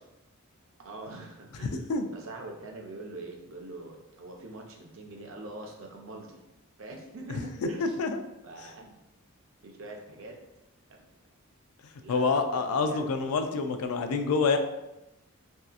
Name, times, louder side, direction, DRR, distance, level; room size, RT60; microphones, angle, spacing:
voice 1, 0.8-6.4 6.8-8.0 8.4-9.0 9.6-10.4 10.9-11.0 12.0-13.2, right 2 dB, 60° right, 1 dB, 0.5 m, -44 dB
voice 2, 7.8-8.2 12.1-14.6, left 4 dB, 80° left, 6 dB, 0.4 m, -27 dB
3.2 x 2.7 x 2.3 m, 0.91 s
head